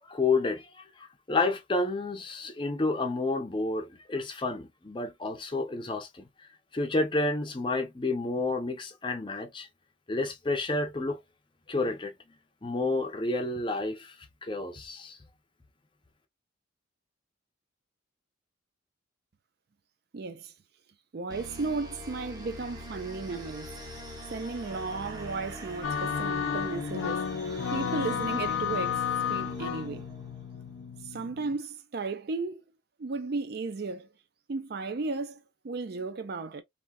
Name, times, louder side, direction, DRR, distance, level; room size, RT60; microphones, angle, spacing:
voice 1, 0.1-6.2 6.7-9.7 10.1-11.2 11.7-12.1 12.6-14.1 14.4-15.2, left 3 dB, 25° left, 0.5 m, -30 dB
voice 2, 20.1-20.5 21.1-23.8 24.3-27.3 27.7-30.0 31.0-32.6 33.0-34.1 34.5-36.6, right 3 dB, 50° right, 0.4 m, -35 dB
sound 1, 21.3-30.7, equal, 20° right, 0.8 m, -43 dB
sound 2, 25.8-31.6, left 7 dB, 70° left, 0.5 m, -32 dB
3.4 x 2.6 x 2.2 m
head